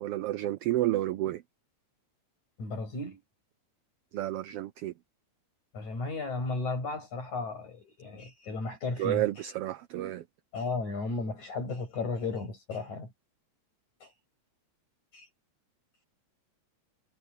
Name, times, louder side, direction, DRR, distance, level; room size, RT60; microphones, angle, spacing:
voice 1, 0.0-1.4 4.1-4.9 9.0-10.2, right 15 dB, 85° right, 1.3 m, -30 dB
voice 2, 2.6-3.2 5.7-9.3 10.5-13.1 14.0-14.1 15.1-15.3, left 3 dB, 80° left, 9.5 m, -34 dB
omnidirectional pair, 3.3 m